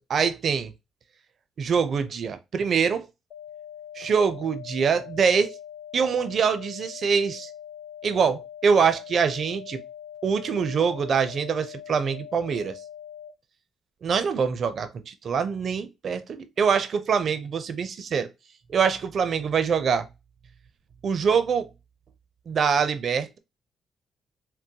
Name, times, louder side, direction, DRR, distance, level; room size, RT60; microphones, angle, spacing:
voice 1, 0.1-0.7 1.6-3.1 4.0-5.5 5.9-7.5 8.0-9.8 10.2-12.7 14.0-18.3 18.7-20.1 21.0-21.7 22.5-23.4, right 6 dB, 55° right, 0.4 m, -24 dB
sound 1, 3.3-13.3, left 10 dB, 70° left, 0.6 m, -42 dB
3.7 x 2.2 x 2.7 m
cardioid pair, 90°, 0 cm